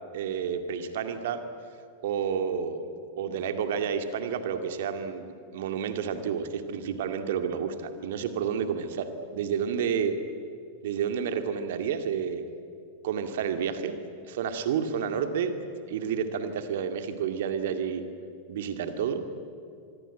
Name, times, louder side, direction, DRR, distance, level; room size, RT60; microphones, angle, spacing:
voice 1, 0.1-1.4 2.0-2.8 3.2-5.3 5.5-10.1 10.8-12.4 13.0-14.0 14.2-15.5 15.9-18.0 18.5-19.3, right 7 dB, 55° right, 8 dB, 2.3 m, -30 dB
25.0 x 23.0 x 9.1 m, 2.5 s
figure-of-eight pair, 90°, 0 cm